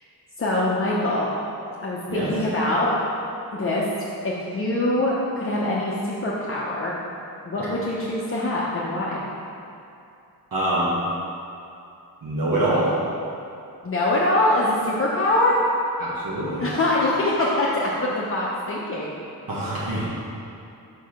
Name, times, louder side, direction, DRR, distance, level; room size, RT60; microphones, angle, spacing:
voice 1, 0.4-1.3 1.8-2.9 3.5-3.9 4.2-6.9 7.4-9.2 13.8-15.6 16.6-19.1, left 1 dB, 35° left, -6 dB, 0.7 m, -23 dB
voice 2, 10.5-10.9 12.2-12.9 16.0-16.7 19.5-20.0, right 1 dB, 65° right, -9 dB, 1.3 m, -24 dB
4.8 x 4.6 x 5.7 m, 2.7 s
wide cardioid pair, 125°, 37 cm